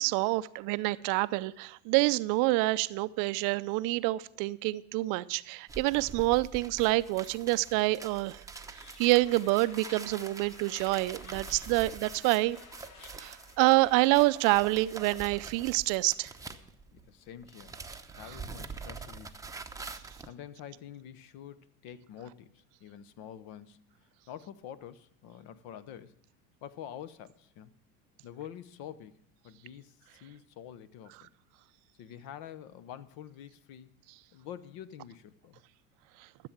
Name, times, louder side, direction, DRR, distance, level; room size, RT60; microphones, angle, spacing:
voice 1, 0.0-8.4 9.0-12.6 13.2-16.3, right 20 dB, 50° right, 16 dB, 0.5 m, -27 dB
sound 1, 5.7-17.1 17.4-20.3, right 4 dB, 10° right, 0.8 m, -45 dB
sound 2, 8.7-14.9, left 5 dB, 70° left, 1.7 m, -54 dB
voice 2, 16.9-17.8 18.1-19.6 20.2-23.8 24.3-26.1 26.6-27.8 28.2-31.3 32.0-33.9 34.3-35.6, left 10 dB, 55° left, 15 dB, 1.0 m, -47 dB
13.5 x 7.6 x 7.3 m, 0.69 s
hypercardioid pair, 90°, 43 cm